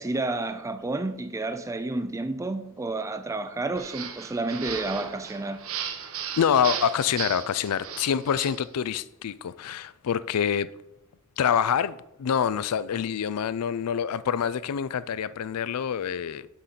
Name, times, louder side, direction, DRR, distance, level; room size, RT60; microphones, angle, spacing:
voice 1, 0.0-5.6, right 2 dB, 15° right, 0.4 m, -30 dB
sound 1, 3.8-8.6, right 7 dB, 65° right, 0.9 m, -36 dB
voice 2, 6.4-10.7 11.4-16.5, left 8 dB, 80° left, 0.4 m, -26 dB
6.1 x 5.7 x 6.7 m
head